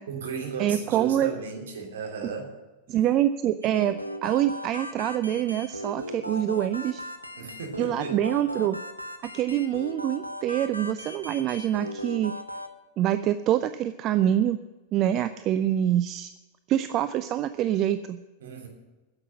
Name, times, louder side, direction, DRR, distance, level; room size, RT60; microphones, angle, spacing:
voice 1, 0.1-2.5 7.4-8.2 18.4-18.7, right 5 dB, 60° right, 1 dB, 3.1 m, -35 dB
voice 2, 0.6-1.3 2.9-7.0 7.8-8.8 9.2-12.3 13.0-14.6 14.9-16.3 16.7-18.2, right 11 dB, 35° right, 11 dB, 0.4 m, -25 dB
sound 1, 3.6-12.7, equal, 90° right, 0.9 m, -38 dB
10.0 x 7.9 x 9.7 m, 1.1 s
figure-of-eight pair, 90°, 0 cm